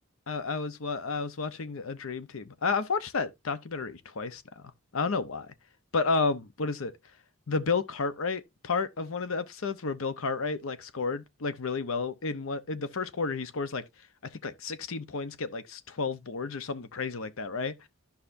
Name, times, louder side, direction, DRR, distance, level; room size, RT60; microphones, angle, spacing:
voice 1, 0.3-4.6 4.9-5.5 5.9-6.9 7.5-13.8 14.4-17.7, left 4 dB, 75° left, 0.8 m, -31 dB
12.0 x 5.7 x 2.6 m
head